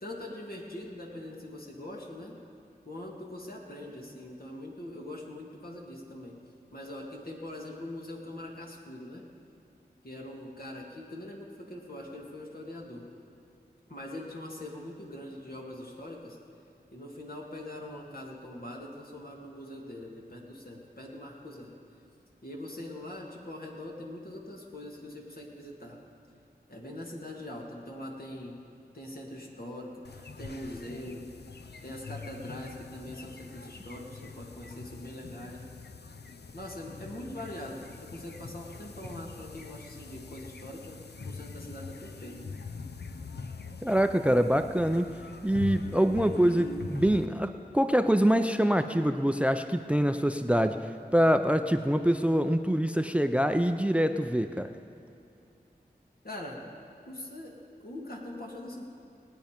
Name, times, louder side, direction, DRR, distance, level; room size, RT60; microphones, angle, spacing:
voice 1, 0.0-2.4 2.9-6.4 6.7-9.2 10.0-13.1 13.9-16.4 16.9-21.7 22.4-26.0 26.7-28.6 28.9-31.2 31.8-35.7 36.5-42.4 56.2-56.6 57.1-57.6 57.8-58.8, left 1 dB, 65° left, -2 dB, 2.2 m, -42 dB
sound 1, 30.0-47.3, left 4 dB, 80° left, 0.6 m, -43 dB
voice 2, 43.8-45.1 45.4-50.8 51.1-54.7, equal, 5° right, 9 dB, 0.5 m, -25 dB
19.5 x 9.3 x 5.2 m, 2.6 s
wide cardioid pair, 45°, 17 cm